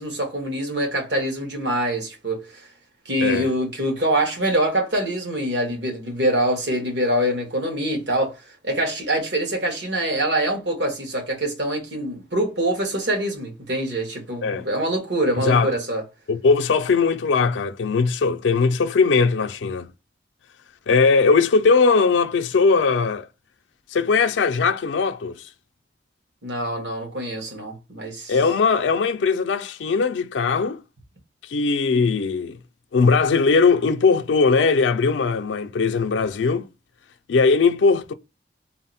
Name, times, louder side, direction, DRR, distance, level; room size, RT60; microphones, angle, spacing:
voice 1, 0.0-2.7 3.0-16.0 26.4-28.4, right 1 dB, 75° right, 1.4 m, -24 dB
voice 2, 15.4-15.7 16.3-19.9 20.9-23.3 23.9-25.4 28.3-30.8 31.5-32.6 32.9-36.7 37.3-38.1, left 4 dB, 80° left, 0.4 m, -19 dB
3.9 x 2.1 x 4.1 m
head